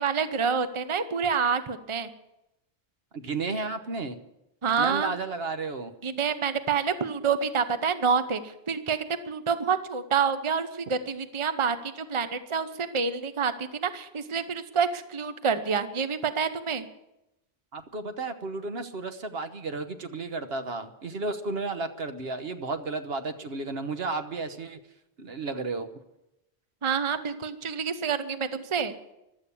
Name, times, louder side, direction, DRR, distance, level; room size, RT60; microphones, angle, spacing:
voice 1, 0.0-2.1 4.6-5.1 6.0-16.9 26.8-28.9, right 6 dB, 30° right, 11 dB, 0.9 m, -27 dB
voice 2, 3.1-4.2 4.8-6.0 17.7-24.8 25.2-25.9, right 3 dB, 70° right, 8 dB, 1.3 m, -33 dB
15.5 x 12.0 x 7.1 m, 0.88 s
omnidirectional pair, 1.1 m